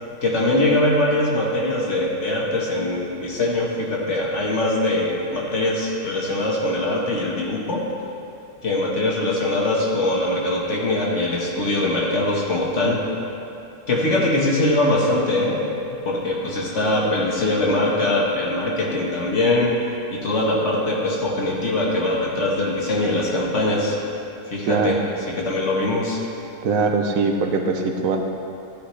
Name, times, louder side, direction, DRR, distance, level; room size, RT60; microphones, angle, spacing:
voice 1, 0.2-7.8 8.6-13.0 13.9-15.6 16.1-19.7 20.1-24.0 24.5-25.0 25.3-26.2, left 2 dB, 65° left, -3 dB, 1.7 m, -22 dB
voice 2, 26.6-28.2, right 4 dB, 85° right, 4 dB, 1.3 m, -21 dB
14.0 x 8.5 x 3.3 m, 2.7 s
omnidirectional pair, 1.4 m